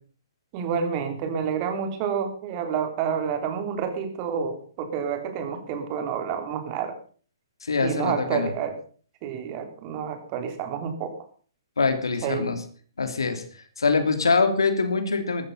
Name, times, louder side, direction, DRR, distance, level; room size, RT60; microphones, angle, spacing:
voice 1, 0.5-6.9 7.8-8.8 9.2-11.1 12.2-12.5, right 7 dB, 35° right, 7 dB, 3.6 m, -29 dB
voice 2, 7.6-8.5 11.8-12.6 13.0-15.5, left 4 dB, 80° left, 8 dB, 3.1 m, -24 dB
14.5 x 14.0 x 5.6 m, 0.43 s
hypercardioid pair, 130°, 2 cm